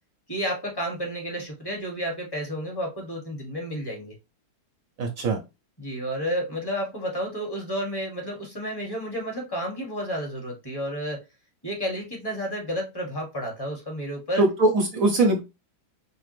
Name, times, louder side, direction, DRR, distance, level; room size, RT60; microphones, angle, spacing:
voice 1, 0.3-4.1 5.8-11.2 11.6-14.4, equal, 15° left, -1 dB, 1.0 m, -31 dB
voice 2, 5.0-5.4 14.4-15.4, right 2 dB, 65° right, 2 dB, 0.8 m, -21 dB
5.0 x 2.1 x 3.2 m, 0.25 s
omnidirectional pair, 2.3 m